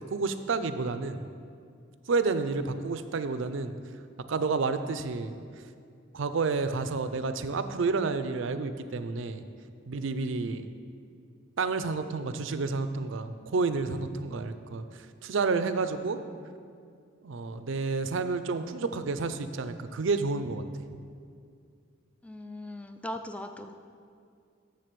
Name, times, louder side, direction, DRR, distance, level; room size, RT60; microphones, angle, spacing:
voice 1, 0.1-1.2 2.1-3.7 4.3-5.3 6.1-9.4 9.9-10.7 11.6-14.8 15.2-16.2 17.2-20.6, right 4 dB, 65° right, 11 dB, 0.5 m, -30 dB
voice 2, 22.2-23.8, left 1 dB, 5° left, 7 dB, 0.3 m, -39 dB
7.6 x 7.0 x 6.7 m, 2.3 s
head